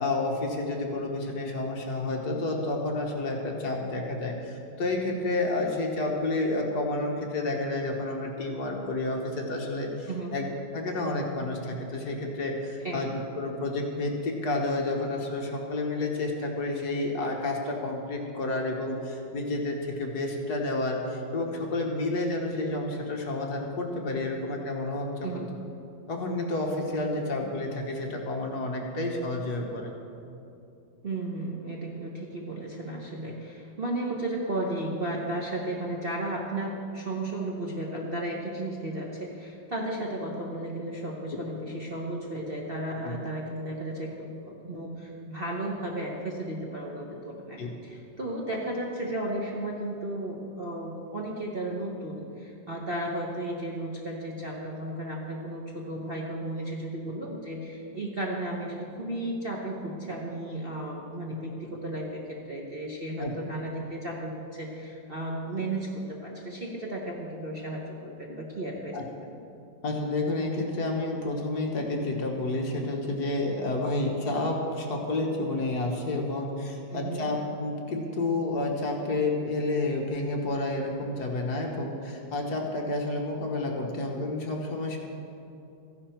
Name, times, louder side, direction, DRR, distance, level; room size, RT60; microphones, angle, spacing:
voice 1, 0.0-10.4 10.7-25.5 26.1-29.9 43.0-43.2 47.6-47.7 63.2-63.3 68.9-69.0 69.8-85.0, left 2 dB, 55° left, 0 dB, 1.7 m, -30 dB
voice 2, 31.0-69.0 69.3-69.4 76.9-77.3, right 1 dB, 40° right, -2 dB, 0.9 m, -34 dB
14.5 x 10.5 x 4.5 m, 2.7 s
omnidirectional pair, 2.1 m